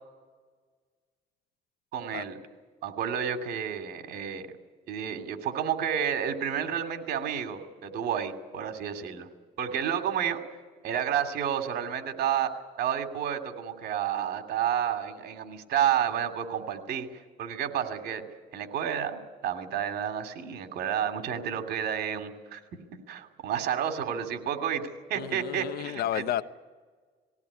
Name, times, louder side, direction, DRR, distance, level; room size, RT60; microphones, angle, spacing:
voice 1, 1.9-2.4 2.8-4.5 4.9-9.3 9.6-10.4 10.8-12.5 12.8-18.2 18.5-22.6 22.9-26.2, right 9 dB, 70° right, 7 dB, 2.7 m, -30 dB
voice 2, 25.1-26.4, left 12 dB, 65° left, 14 dB, 0.9 m, -31 dB
20.0 x 16.5 x 9.8 m, 1.5 s
cardioid pair, 110°, 17 cm